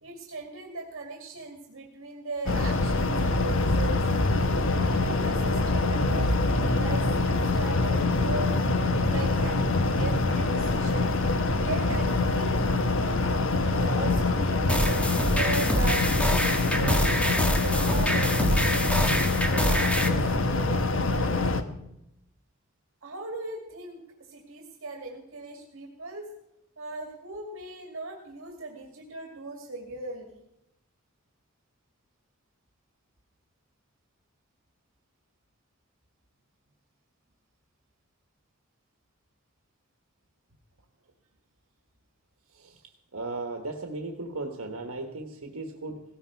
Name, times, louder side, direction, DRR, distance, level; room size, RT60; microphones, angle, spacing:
voice 1, 0.0-4.0 4.8-8.5 9.1-9.7 10.0-11.1 11.6-12.6 13.6-16.0 16.7-17.1 17.6-21.7 23.0-24.0 24.3-26.3 26.8-30.4, right 2 dB, 70° right, 2 dB, 2.2 m, -38 dB
sound 1, 2.5-21.6, left 2 dB, 65° left, 1.1 m, -25 dB
sound 2, 14.7-20.1, equal, 5° left, 1.3 m, -26 dB
voice 2, 43.1-46.0, right 2 dB, 85° right, 4 dB, 1.4 m, -36 dB
17.5 x 15.5 x 4.6 m, 0.84 s
head